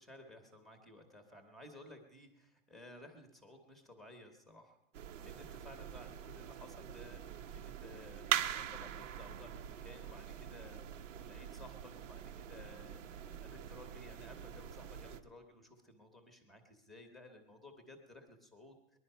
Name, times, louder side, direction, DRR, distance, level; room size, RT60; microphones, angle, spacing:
voice 1, 0.0-4.8 5.2-19.0, left 1 dB, ahead, 6 dB, 0.9 m, -56 dB
sound 1, 4.9-15.2, right 10 dB, 90° right, 1.0 m, -43 dB
20.5 x 11.0 x 5.5 m, 0.92 s
supercardioid pair, 175°, 37 cm